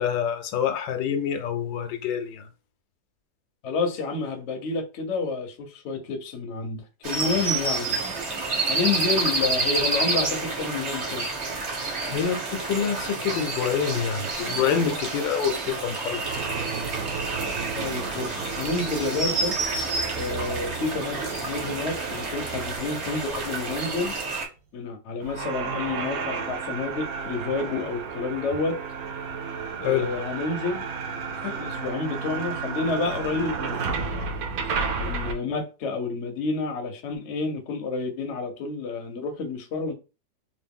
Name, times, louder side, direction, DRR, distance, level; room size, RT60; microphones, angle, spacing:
voice 1, 0.0-2.4 12.1-16.5 29.8-30.1, left 8 dB, 85° left, 1.3 m, -27 dB
voice 2, 3.6-8.0 8.7-11.3 17.7-19.6 20.1-24.1 24.7-28.8 29.8-30.8 31.4-34.4 35.0-39.9, left 3 dB, 55° left, 0.8 m, -29 dB
sound 1, 7.0-24.4, right 3 dB, 45° right, 1.2 m, -29 dB
sound 2, 16.2-24.2 25.2-35.3, right 5 dB, 65° right, 1.0 m, -33 dB
3.0 x 2.6 x 3.5 m
omnidirectional pair, 1.9 m